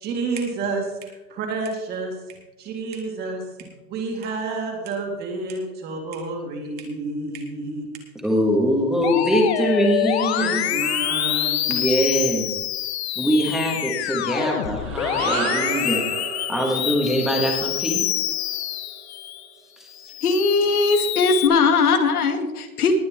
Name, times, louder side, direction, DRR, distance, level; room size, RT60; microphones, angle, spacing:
voice 1, 0.0-2.1 2.6-3.4 3.9-7.9 10.4-11.8, right 3 dB, 20° right, 2 dB, 2.2 m, -29 dB
voice 2, 8.2-10.7 11.7-12.5 13.2-16.1 16.5-18.1 19.8-19.9, equal, ahead, -1 dB, 1.7 m, -22 dB
Musical instrument, 9.0-19.5 19.9-21.5, left 12 dB, 45° left, 0.9 m, -26 dB
sound 1, 14.6-19.1, right 10 dB, 45° right, 1.1 m, -34 dB
voice 3, 20.2-22.9, left 4 dB, 85° left, 6 dB, 2.2 m, -19 dB
19.5 x 9.4 x 3.6 m, 1.0 s
hypercardioid pair, 160°, 44 cm